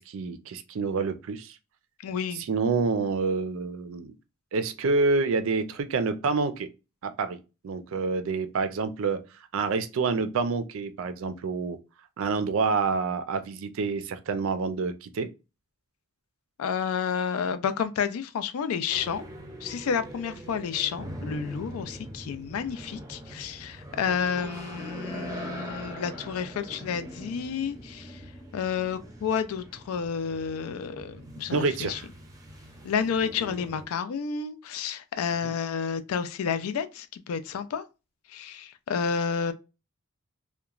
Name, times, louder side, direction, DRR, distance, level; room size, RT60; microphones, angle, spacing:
voice 1, 0.0-1.6 2.4-4.2 4.5-6.7 7.0-7.4 7.6-9.2 9.5-11.8 12.2-15.3 31.5-32.0 35.4-35.5, right 4 dB, 65° right, 0.4 m, -27 dB
voice 2, 2.0-2.4 16.6-19.2 19.6-28.2 28.5-32.0 32.8-37.8 38.3-39.5, left 6 dB, 80° left, 0.3 m, -30 dB
sound 1, 18.9-33.9, right 1 dB, 15° right, 0.5 m, -42 dB
2.8 x 2.1 x 2.3 m
head